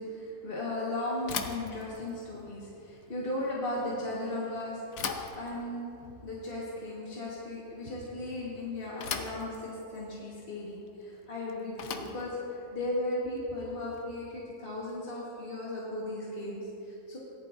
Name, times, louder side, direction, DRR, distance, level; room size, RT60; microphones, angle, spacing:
voice 1, 0.0-4.8 5.1-17.2, left 1 dB, 45° left, -6 dB, 1.6 m, -36 dB
Bicycle / Thump thud, 1.2-14.3, left 6 dB, 80° left, 1.2 m, -42 dB
17.5 x 11.5 x 2.6 m, 2.9 s
omnidirectional pair, 1.4 m